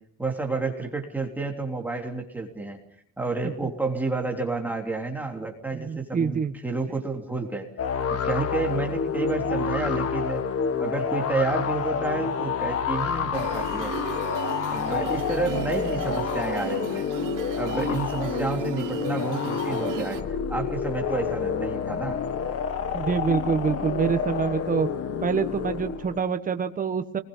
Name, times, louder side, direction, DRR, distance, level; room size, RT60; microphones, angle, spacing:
voice 1, 0.2-2.8 3.2-7.7 8.1-10.4 10.8-13.9 14.7-17.1 17.6-22.2, right 3 dB, 5° right, 0 dB, 3.3 m, -30 dB
voice 2, 5.7-6.5 22.9-24.9 25.2-27.2, right 6 dB, 25° right, 8 dB, 1.3 m, -26 dB
sound 1, 7.8-26.2, left 6 dB, 45° left, 1.7 m, -28 dB
sound 2, 13.3-20.2, right 14 dB, 70° right, 1.4 m, -36 dB
28.0 x 20.5 x 5.5 m, 0.65 s
cardioid pair, 170°, 33 cm